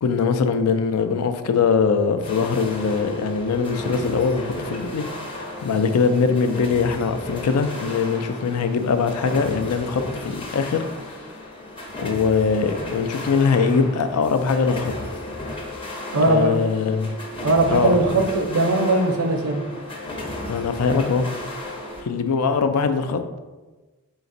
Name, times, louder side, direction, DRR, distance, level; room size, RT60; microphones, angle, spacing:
voice 1, 0.0-5.0 5.6-11.2 12.0-14.9 16.2-17.1 17.7-18.0 20.5-21.3 22.0-23.4, left 5 dB, 85° left, 9 dB, 0.4 m, -22 dB
sound 1, 2.2-22.0, left 1 dB, 25° left, 0.6 m, -34 dB
voice 2, 16.1-16.5 17.4-19.6, right 2 dB, 70° right, 4 dB, 0.5 m, -19 dB
4.0 x 3.9 x 2.5 m, 1.2 s
head